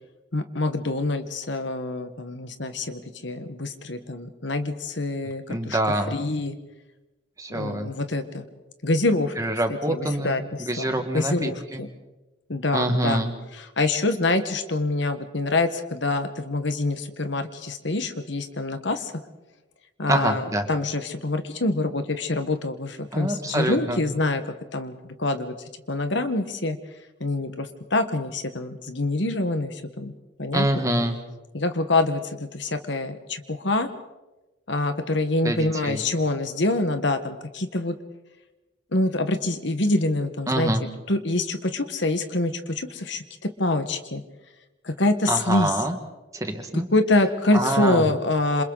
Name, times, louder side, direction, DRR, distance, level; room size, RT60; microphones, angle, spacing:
voice 1, 0.3-5.8 6.1-6.6 7.5-8.4 8.8-9.3 9.9-11.9 12.5-13.2 13.6-19.1 20.0-24.4 24.7-25.5 25.9-26.8 27.2-30.1 30.4-30.8 31.5-33.9 34.7-37.9 38.9-40.7 41.1-44.2 44.8-45.7 46.7-48.6, left 2 dB, 65° left, 8 dB, 1.5 m, -25 dB
voice 2, 5.5-6.2 7.4-7.9 9.4-11.8 12.7-13.3 20.1-20.7 23.1-24.0 30.5-31.2 35.4-36.0 40.5-40.8 45.3-46.0 46.3-46.9 47.5-48.1, right 1 dB, 15° right, 5 dB, 1.9 m, -25 dB
28.0 x 27.0 x 4.1 m, 1.1 s
head